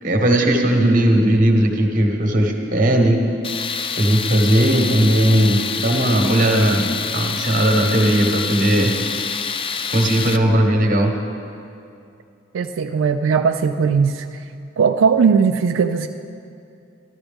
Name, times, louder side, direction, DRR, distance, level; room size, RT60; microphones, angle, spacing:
voice 1, 0.0-3.2 4.0-8.9 9.9-11.1, right 1 dB, 45° right, 3 dB, 1.1 m, -17 dB
Tools, 3.4-10.4, left 6 dB, 25° left, 0.3 m, -26 dB
voice 2, 12.5-14.4 14.8-16.1, right 6 dB, 90° right, 6 dB, 0.3 m, -18 dB
13.5 x 12.5 x 3.5 m, 2.5 s
head